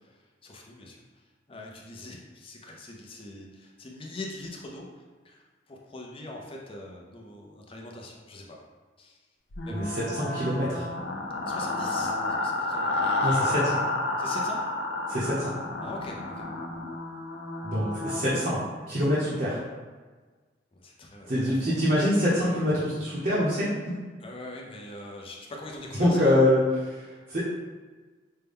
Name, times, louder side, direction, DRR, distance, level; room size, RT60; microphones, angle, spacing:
voice 1, 0.0-8.6 9.0-9.2 9.6-9.9 11.4-13.6 14.2-14.6 15.8-16.5 20.7-21.9 24.2-26.3, left 2 dB, 30° left, -1 dB, 0.6 m, -43 dB
sound 1, 9.5-18.4, left 2 dB, 75° left, 0.6 m, -30 dB
voice 2, 9.7-10.9 13.2-13.6 15.1-15.5 17.6-18.6 18.9-19.6 21.3-23.7 26.0-27.4, left 1 dB, 45° right, -9 dB, 0.8 m, -25 dB
5.4 x 2.2 x 3.5 m, 1.4 s
head